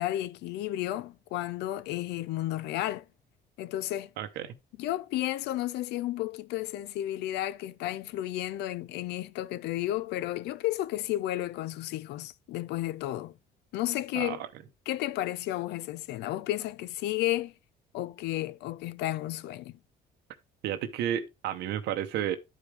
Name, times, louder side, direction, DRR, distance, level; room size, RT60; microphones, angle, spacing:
voice 1, 0.0-3.0 3.6-4.1 4.8-13.3 13.7-14.4 14.9-17.5 17.9-19.8, left 15 dB, 85° left, 0.5 m, -32 dB
voice 2, 4.2-4.6 14.1-14.4 20.6-22.4, right 10 dB, 80° right, 0.9 m, -31 dB
11.0 x 5.0 x 3.3 m
cardioid pair, 110°, 17 cm